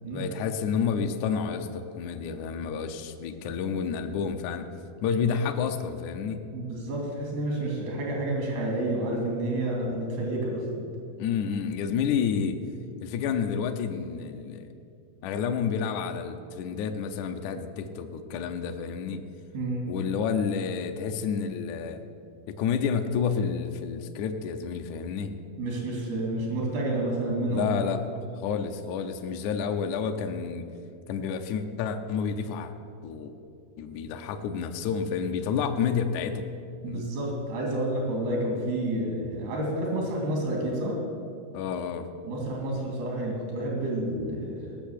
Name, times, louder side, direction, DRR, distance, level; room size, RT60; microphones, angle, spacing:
voice 1, 0.1-4.7 5.0-6.4 11.2-12.6 13.0-14.7 15.2-19.2 19.9-22.0 22.5-25.3 27.5-28.0 28.4-30.7 31.1-32.7 33.0-33.3 33.8-36.4 36.9-37.0 41.5-42.1, left 6 dB, 80° left, 5 dB, 1.7 m, -29 dB
voice 2, 6.5-10.9 19.5-19.9 25.6-27.8 36.8-41.0 42.2-44.8, right 1 dB, 85° right, -1 dB, 4.6 m, -30 dB
18.5 x 6.5 x 8.4 m, 2.5 s
omnidirectional pair, 4.4 m